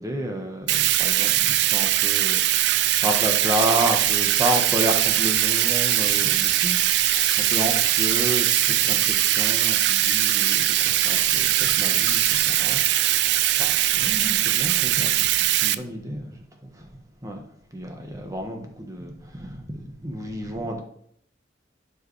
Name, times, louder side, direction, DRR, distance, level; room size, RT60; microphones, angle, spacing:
voice 1, 0.0-16.4 16.6-16.9 17.2-17.4 17.7-20.8, equal, 20° right, 3 dB, 1.1 m, -31 dB
Bathtub (filling or washing), 0.7-15.7, right 14 dB, 60° right, 0.3 m, -21 dB
sound 1, 0.8-12.6, right 4 dB, 85° right, 2.3 m, -34 dB
11.5 x 4.7 x 3.3 m, 0.67 s
head